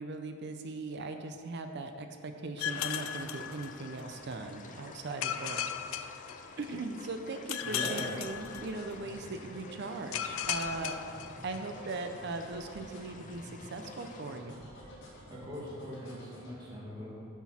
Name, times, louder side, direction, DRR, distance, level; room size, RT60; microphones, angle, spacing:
voice 1, 0.0-5.6 6.0-6.2 6.6-14.7, right 3 dB, 60° right, 6 dB, 0.6 m, -39 dB
sound 1, 2.6-4.2 5.2-6.9 7.5-9.1 10.1-11.9, left 9 dB, 85° left, 0.4 m, -37 dB
sound 2, 2.6-14.4, left 3 dB, 40° left, 0.6 m, -51 dB
voice 2, 7.6-8.0 15.3-17.3, equal, 20° right, -8 dB, 2.1 m, -41 dB
sound 3, 8.2-16.5, equal, 65° left, 2.1 m, -50 dB
10.5 x 6.1 x 4.3 m, 2.3 s
head